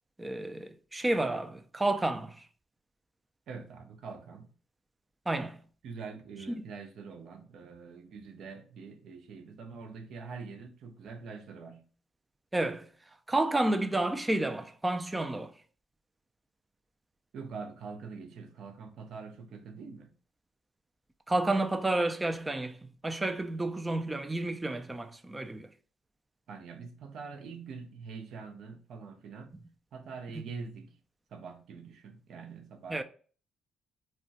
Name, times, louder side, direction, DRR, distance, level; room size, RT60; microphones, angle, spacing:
voice 1, 0.2-2.4 5.3-5.6 6.5-6.6 12.5-12.9 13.3-15.5 21.3-25.7 32.9-33.0, right 2 dB, 15° right, 0.3 m, -30 dB
voice 2, 3.5-4.5 5.8-11.9 17.3-20.1 26.5-29.6 29.9-31.0 31.3-33.0, right 5 dB, 70° right, 0.5 m, -44 dB
2.3 x 2.1 x 3.9 m
cardioid pair, 90°, 0 cm